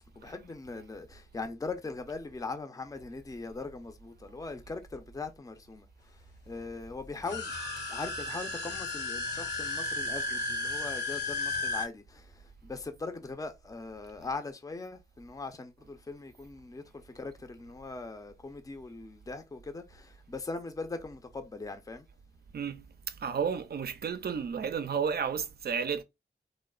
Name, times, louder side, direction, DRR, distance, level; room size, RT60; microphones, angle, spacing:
voice 1, 0.2-7.5 7.9-22.1, left 3 dB, 20° left, 0.5 m, -40 dB
sound 1, 7.1-11.9, left 2 dB, 70° left, 0.9 m, -34 dB
voice 2, 22.5-26.0, right 6 dB, 60° right, 0.4 m, -32 dB
3.0 x 2.0 x 2.3 m
cardioid pair, 45°, 18 cm